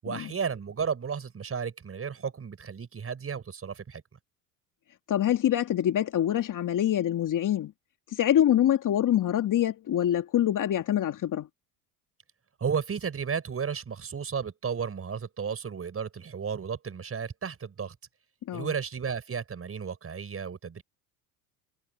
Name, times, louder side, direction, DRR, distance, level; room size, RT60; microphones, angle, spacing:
voice 1, 0.0-4.0 12.6-17.9 18.5-20.8, right 6 dB, 30° right, 6.6 m, -33 dB
voice 2, 5.1-7.7 8.1-11.5 18.5-18.7, left 11 dB, 45° left, 2.4 m, -25 dB
hypercardioid pair, 75°, 45 cm